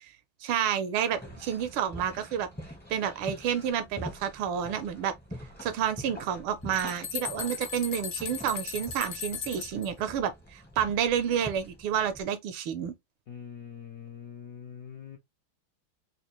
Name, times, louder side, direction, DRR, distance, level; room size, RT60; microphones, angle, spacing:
voice 1, 0.4-2.5 2.9-5.1 5.6-12.9, right 8 dB, 85° right, 1.6 m, -30 dB
sound 1, 1.1-12.2, equal, 10° left, 0.4 m, -45 dB
sound 2, 6.4-6.5 6.7-9.9, left 8 dB, 60° left, 1.1 m, -37 dB
voice 2, 13.3-15.2, left 8 dB, 80° left, 0.7 m, -43 dB
4.2 x 2.4 x 3.0 m
omnidirectional pair, 2.3 m